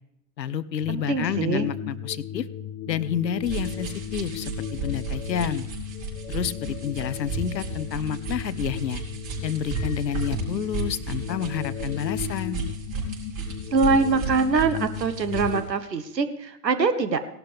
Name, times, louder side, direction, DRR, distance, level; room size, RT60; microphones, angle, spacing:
voice 1, 0.4-2.5 2.9-5.7 6.3-9.0 9.4-12.6, left 8 dB, 85° left, 15 dB, 0.8 m, -29 dB
sound 1, 0.8-15.6, left 9 dB, 55° left, 1.4 m, -36 dB
voice 2, 0.9-1.7 13.7-17.2, right 4 dB, 85° right, 10 dB, 1.5 m, -23 dB
sound 2, 3.4-15.6, right 4 dB, 45° right, 4.6 m, -34 dB
17.5 x 12.0 x 3.5 m, 0.76 s
hypercardioid pair, 125°, 49 cm